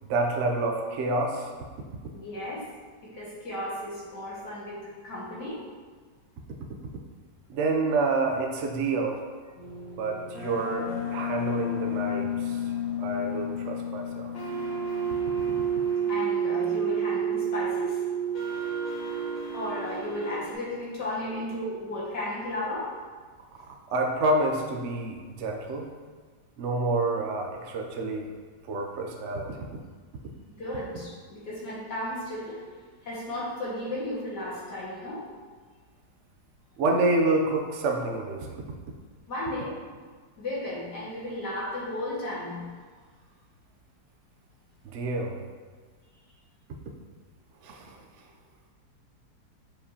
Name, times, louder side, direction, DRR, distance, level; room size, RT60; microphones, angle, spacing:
voice 1, 0.1-1.5 7.5-9.2 10.0-12.6 13.0-14.3 23.9-25.9 26.6-28.3 28.6-29.7 36.8-38.6 44.8-45.4 47.6-48.0, right 2 dB, 65° right, 1 dB, 0.7 m, -28 dB
voice 2, 2.1-2.7 3.0-4.8 5.0-5.6 16.1-18.0 19.5-22.9 30.6-32.6 33.0-35.2 39.3-39.7 40.4-42.7, left 1 dB, 70° left, -7 dB, 2.3 m, -34 dB
sound 1, 9.6-20.5, right 3 dB, 85° left, 2.2 m, -30 dB
7.5 x 4.8 x 2.8 m, 1.5 s
omnidirectional pair, 1.9 m